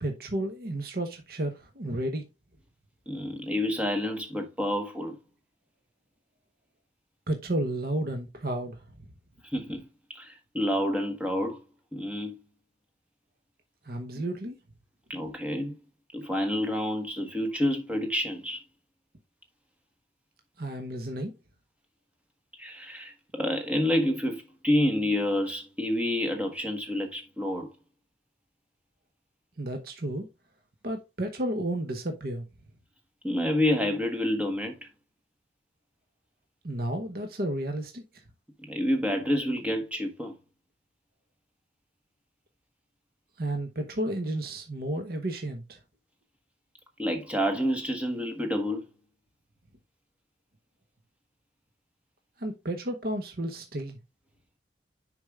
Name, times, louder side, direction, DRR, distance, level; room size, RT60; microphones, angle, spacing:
voice 1, 0.0-2.2 7.3-8.8 13.8-14.6 20.6-21.3 29.6-30.3 30.8-32.4 36.6-38.0 43.4-45.8 52.4-54.0, right 1 dB, 50° right, 0.9 m, -32 dB
voice 2, 3.1-5.2 9.5-11.6 11.9-12.4 14.1-14.2 15.1-15.8 16.1-18.6 22.6-27.7 33.2-34.9 38.7-40.3 47.0-48.8, left 1 dB, 5° right, 1.2 m, -28 dB
6.5 x 5.2 x 3.5 m
head